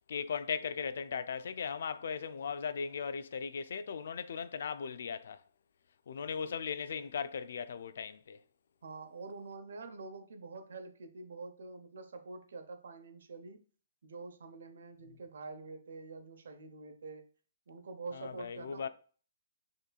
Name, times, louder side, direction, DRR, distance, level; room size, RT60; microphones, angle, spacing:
voice 1, 0.1-5.4 6.1-8.4 18.1-18.9, left 6 dB, 65° left, 0.3 m, -38 dB
voice 2, 8.8-13.6 14.0-17.2 17.7-18.9, right 3 dB, 70° right, 0.8 m, -46 dB
6.5 x 2.9 x 2.3 m
hypercardioid pair, 140°, 0 cm